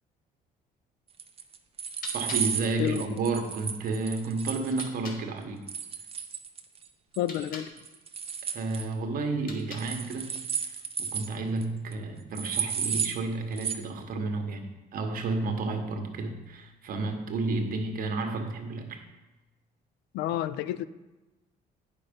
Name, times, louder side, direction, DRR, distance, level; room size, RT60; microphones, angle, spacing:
sound 1, 1.2-4.9 5.7-6.8 7.1-7.5 7.8-8.9 9.8-11.3 11.6-11.7 11.9-12.0 12.3-13.2 13.6-13.7, right 7 dB, 35° right, 0.8 m, -33 dB
sound 2, 1.7-5.3 7.1-7.8 9.3-10.1, left 3 dB, 60° left, 1.6 m, -46 dB
voice 1, 2.1-5.6 8.5-19.0, right 3 dB, 55° right, 4 dB, 1.3 m, -31 dB
voice 2, 7.2-7.7 20.1-20.9, left 12 dB, 85° left, 15 dB, 0.4 m, -29 dB
9.2 x 5.4 x 5.3 m, 1.1 s
cardioid pair, 110°, 17 cm